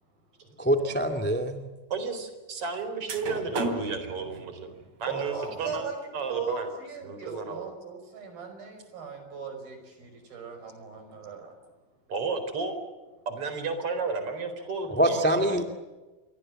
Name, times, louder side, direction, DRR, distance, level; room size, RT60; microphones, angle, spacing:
voice 1, 0.6-1.7 15.0-15.6, right 1 dB, 5° left, 5 dB, 1.1 m, -24 dB
Old elevator ride, 0.8-1.0 2.7-2.8 3.1-5.9, right 2 dB, 55° right, 3.8 m, -35 dB
voice 2, 1.9-4.7 5.0-5.8 6.1-6.7 7.0-7.7 12.1-12.7 13.3-15.6, right 4 dB, 40° right, 8 dB, 4.9 m, -33 dB
voice 3, 5.1-6.0 6.3-11.6, right 6 dB, 80° right, 7 dB, 7.4 m, -37 dB
28.5 x 24.0 x 7.7 m, 1.2 s
omnidirectional pair, 4.2 m